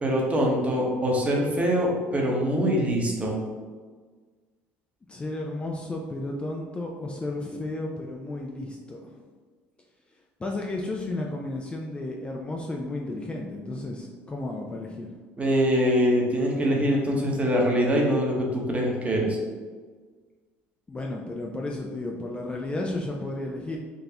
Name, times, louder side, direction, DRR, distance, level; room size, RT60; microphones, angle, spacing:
voice 1, 0.0-3.3 15.4-19.4, equal, 25° right, -1 dB, 0.9 m, -23 dB
voice 2, 5.1-9.2 10.4-15.2 20.9-23.8, left 2 dB, 20° left, 0 dB, 0.4 m, -33 dB
3.8 x 2.4 x 2.8 m, 1.5 s
supercardioid pair, 85°, 6 cm